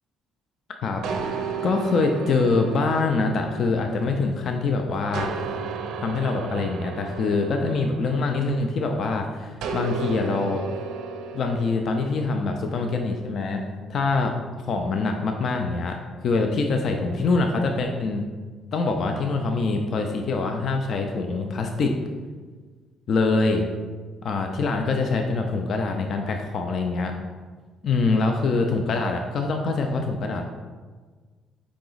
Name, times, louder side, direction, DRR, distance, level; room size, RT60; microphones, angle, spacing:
sound 1, 1.0-4.6 5.1-8.9 9.6-12.3, right 5 dB, 85° right, 0.4 m, -33 dB
voice 1, 1.6-5.3 6.0-10.6 11.3-13.6 13.9-14.3 14.7-16.0 16.2-18.2 18.7-21.9 23.1-23.6 24.2-27.1 27.8-30.5, left 3 dB, 45° left, 4 dB, 0.3 m, -24 dB
4.8 x 2.9 x 3.8 m, 1.4 s
cardioid pair, 160°, 0 cm